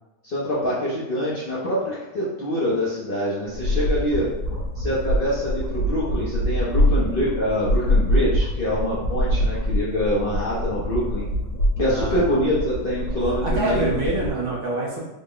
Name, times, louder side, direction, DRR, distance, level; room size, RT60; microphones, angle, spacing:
voice 1, 0.2-4.3 4.8-11.3 11.8-14.0, equal, 50° left, -7 dB, 0.7 m, -25 dB
sound 1, 3.5-14.3, equal, 65° left, 1.2 m, -24 dB
voice 2, 11.8-12.5 13.4-15.0, right 2 dB, 60° right, -4 dB, 1.1 m, -26 dB
3.8 x 2.1 x 3.7 m, 0.98 s
omnidirectional pair, 1.6 m